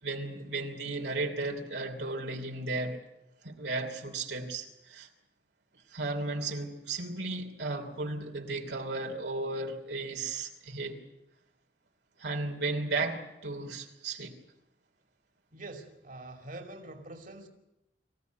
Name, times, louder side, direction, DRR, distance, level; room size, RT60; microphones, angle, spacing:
voice 1, 0.0-3.0 3.4-5.1 5.9-11.0 12.2-14.4, right 3 dB, 80° right, 3.1 m, -35 dB
voice 2, 15.5-17.5, right 2 dB, 50° right, 2.8 m, -45 dB
25.5 x 15.5 x 9.4 m
head